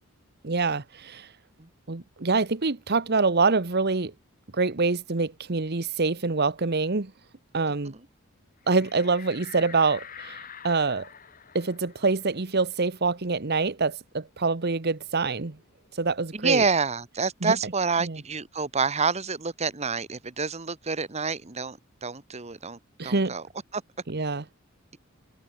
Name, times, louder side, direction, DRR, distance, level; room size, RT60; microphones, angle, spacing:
voice 1, 0.4-1.3 1.9-4.1 4.5-7.1 7.5-7.9 8.7-11.1 11.5-15.6 15.9-16.6 17.4-17.5 18.0-18.2 23.0-23.3 24.1-24.4, right 4 dB, 50° right, 1.1 m, -25 dB
sound 1, 8.6-13.8 14.2-14.3 14.6-16.3, left 7 dB, 40° left, 4.5 m, -47 dB
voice 2, 16.3-23.5 23.7-23.8, right 4 dB, 30° right, 1.3 m, -28 dB
head